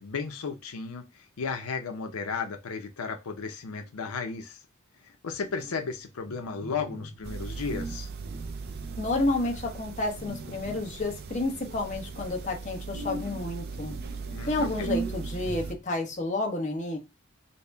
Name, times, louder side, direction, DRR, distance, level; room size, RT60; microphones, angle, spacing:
voice 1, 0.0-4.6 5.0-8.1 14.3-14.9, left 5 dB, 85° left, 5 dB, 0.6 m, -34 dB
sound 1, 5.3-7.3 7.7-9.6 10.2-11.2 12.9-15.9, right 2 dB, 80° right, 0.7 m, -40 dB
sound 2, 7.2-15.7, right 4 dB, 45° right, 0.3 m, -39 dB
voice 2, 9.0-13.9 14.5-17.0, left 2 dB, 35° left, 0 dB, 0.9 m, -30 dB
4.0 x 2.1 x 3.4 m, 0.24 s
head